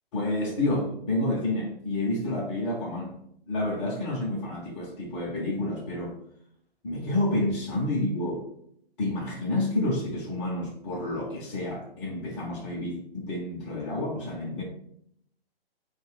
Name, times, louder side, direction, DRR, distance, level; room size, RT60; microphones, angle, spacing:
voice 1, 0.1-3.2 3.5-6.2 6.8-8.4 9.0-14.6, left 1 dB, 30° left, -5 dB, 0.9 m, -29 dB
2.6 x 2.5 x 3.7 m, 0.70 s
figure-of-eight pair, 135°, 30 cm